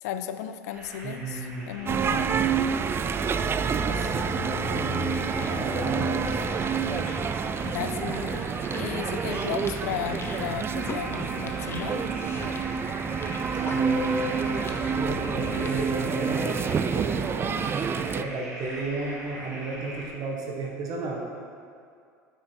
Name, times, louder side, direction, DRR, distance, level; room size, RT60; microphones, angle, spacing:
voice 1, 0.0-2.4 7.6-8.3 8.7-12.1, left 10 dB, 70° left, 10 dB, 0.5 m, -35 dB
sound 1, 0.7-20.1, right 1 dB, 85° right, 2.0 m, -42 dB
voice 2, 1.0-1.6 2.3-2.9 3.6-6.9 13.7-21.2, right 2 dB, 45° right, -1 dB, 1.4 m, -34 dB
sound 2, 1.9-18.2, right 6 dB, 25° right, 0.4 m, -28 dB
sound 3, 2.1-15.8, left 5 dB, 25° left, 0.9 m, -39 dB
9.0 x 6.0 x 4.6 m, 2.3 s
hypercardioid pair, 80°, 9 cm